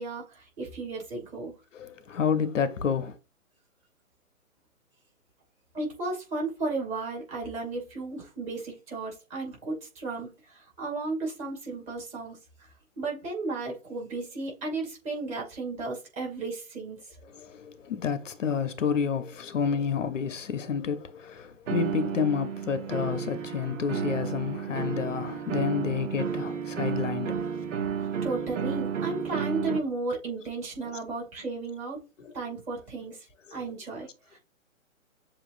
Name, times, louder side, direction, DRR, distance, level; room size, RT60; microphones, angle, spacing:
voice 1, 0.0-1.5 5.7-17.2 28.0-32.0 32.3-34.4, right 3 dB, 15° right, 2.4 m, -34 dB
voice 2, 1.7-3.2 17.2-27.7 28.4-28.5 29.1-29.3 32.2-32.4 33.5-33.8, left 6 dB, 60° left, 0.9 m, -30 dB
sound 1, 21.7-29.8, right 7 dB, 60° right, 1.1 m, -32 dB
7.2 x 2.8 x 2.6 m
hypercardioid pair, 150°, 41 cm